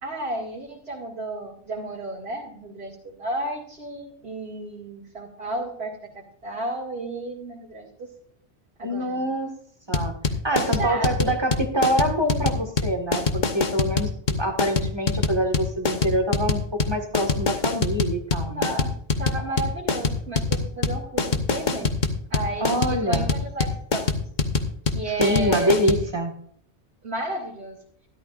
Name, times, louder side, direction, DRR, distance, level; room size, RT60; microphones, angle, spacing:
voice 1, 0.0-5.9 6.4-8.1 8.8-9.3 10.5-11.3 18.5-22.0 22.3-24.1 24.9-25.7 27.0-27.8, right 2 dB, 65° right, -6 dB, 2.6 m, -32 dB
voice 2, 8.8-9.5 9.9-10.2 10.4-18.7 22.6-23.4 25.0-26.3, equal, 25° right, 3 dB, 1.7 m, -25 dB
sound 1, 9.9-26.0, left 4 dB, 45° left, 1.2 m, -24 dB
13.5 x 12.5 x 2.5 m, 0.62 s
omnidirectional pair, 1.1 m